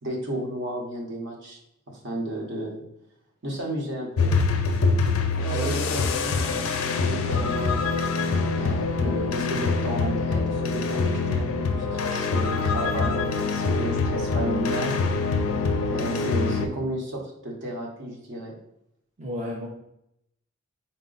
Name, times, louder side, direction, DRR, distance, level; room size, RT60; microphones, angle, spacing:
voice 1, 0.0-1.6 1.9-2.8 3.4-4.3 5.3-7.9 8.6-14.9 15.9-18.5, right 1 dB, 60° right, -1 dB, 0.9 m, -33 dB
sound 1, 4.2-16.7, left 4 dB, 80° left, 0.4 m, -25 dB
voice 2, 5.3-5.7 19.2-19.7, equal, 30° right, -2 dB, 0.5 m, -31 dB
4.1 x 2.1 x 3.8 m, 0.78 s
head